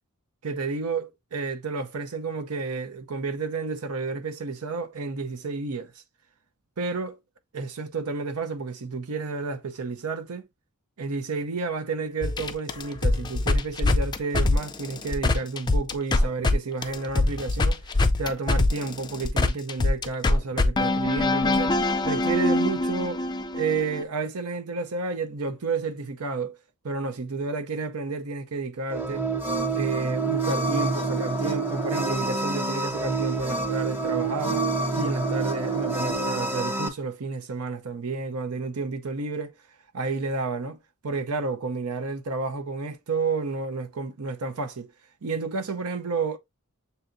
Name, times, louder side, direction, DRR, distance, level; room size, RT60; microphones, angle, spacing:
voice 1, 0.4-5.9 6.8-7.2 7.5-10.5 11.0-17.8 18.2-23.2 23.5-26.6 26.8-29.3 29.7-39.5 39.9-40.8 41.0-44.9 45.2-46.4, right 4 dB, 85° right, 0.7 m, -31 dB
sound 1, 12.2-16.5 16.8-24.0, left 2 dB, 20° left, 0.4 m, -24 dB
sound 2, 28.9-36.9, right 3 dB, 10° right, 0.7 m, -27 dB
6.9 x 2.7 x 2.5 m
head